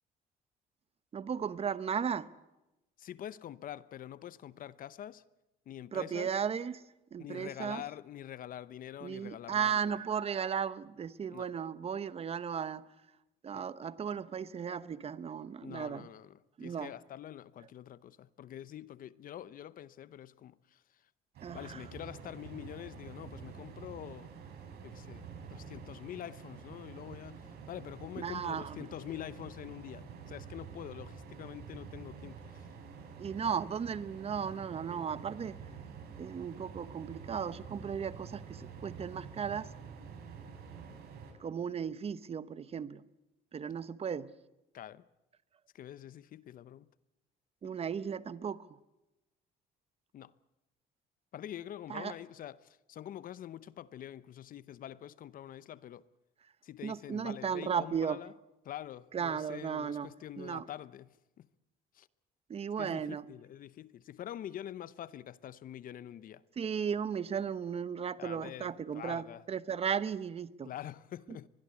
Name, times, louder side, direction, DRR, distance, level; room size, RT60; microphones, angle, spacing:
voice 1, 1.1-2.3 5.9-6.8 7.1-7.8 9.0-12.9 13.4-16.1 16.6-16.9 21.4-21.8 28.2-28.8 33.2-35.6 36.2-39.7 41.4-43.0 43.5-44.3 47.6-48.8 51.9-52.1 56.8-58.2 59.1-60.1 60.4-60.6 62.5-63.2 66.6-70.7, right 7 dB, 35° right, 1.0 m, -35 dB
voice 2, 3.0-5.2 5.7-6.3 7.2-10.0 11.3-11.5 13.5-13.6 15.6-20.8 21.5-24.3 24.8-25.2 25.5-32.7 44.7-45.0 45.7-46.9 47.6-47.7 50.1-50.3 51.3-56.1 56.6-58.3 58.6-61.5 61.9-62.1 62.8-66.4 68.2-69.4 70.6-71.5, left 11 dB, 55° left, 0.8 m, -46 dB
sound 1, 21.3-41.3, right 6 dB, 70° right, 5.9 m, -48 dB
23.5 x 21.0 x 8.5 m
cardioid pair, 110°, 17 cm